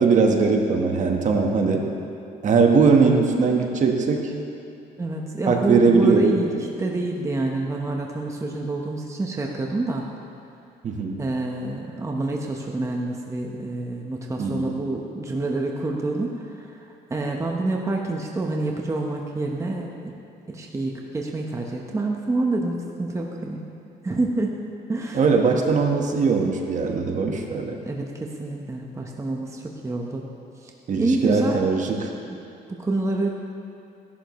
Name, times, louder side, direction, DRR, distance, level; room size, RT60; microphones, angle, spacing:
voice 1, 0.0-1.9 2.4-4.3 5.5-6.4 10.8-11.2 14.4-14.7 25.1-27.8 30.9-32.1, right 4 dB, 45° right, 2 dB, 1.4 m, -20 dB
voice 2, 5.0-10.0 11.2-16.7 17.1-20.1 20.5-23.7 24.0-24.5 24.9-25.2 27.8-30.2 30.6-30.7 31.0-31.6 32.0-32.1 32.7-33.3, right 2 dB, 15° right, 0 dB, 1.1 m, -27 dB
16.5 x 11.5 x 3.2 m, 2.8 s
cardioid pair, 110°, 17 cm